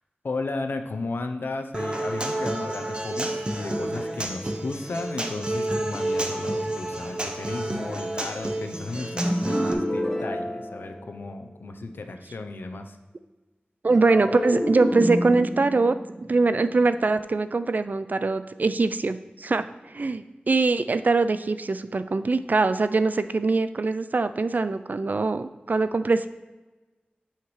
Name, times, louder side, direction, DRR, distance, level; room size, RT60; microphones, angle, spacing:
voice 1, 0.2-13.0, left 3 dB, 90° left, 6 dB, 0.6 m, -34 dB
Human voice / Acoustic guitar, 1.7-9.7, right 1 dB, 30° right, 0.8 m, -30 dB
sound 1, 9.1-11.5 13.9-17.3, equal, 15° left, 1.7 m, -29 dB
voice 2, 13.8-16.0 16.3-26.3, right 3 dB, 55° right, 11 dB, 0.3 m, -23 dB
8.6 x 5.8 x 3.1 m, 1.1 s
wide cardioid pair, 75°, 3 cm